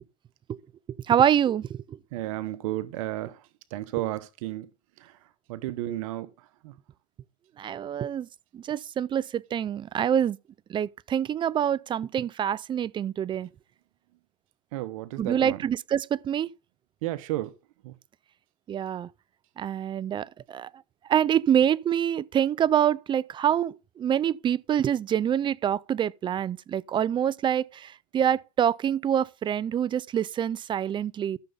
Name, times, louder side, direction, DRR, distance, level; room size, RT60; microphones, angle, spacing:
voice 1, 1.1-2.0 7.6-8.3 8.5-10.4 10.7-13.5 15.2-16.5 18.7-19.1 19.6-20.7 21.1-31.4, right 9 dB, 30° right, 0.5 m, -26 dB
voice 2, 2.1-3.4 3.7-4.7 5.0-5.1 5.5-6.3 6.6-6.7 14.7-15.6 17.0-17.5 17.8-17.9, right 15 dB, 80° right, 1.1 m, -32 dB
13.0 x 6.9 x 4.0 m
supercardioid pair, 110°, 17 cm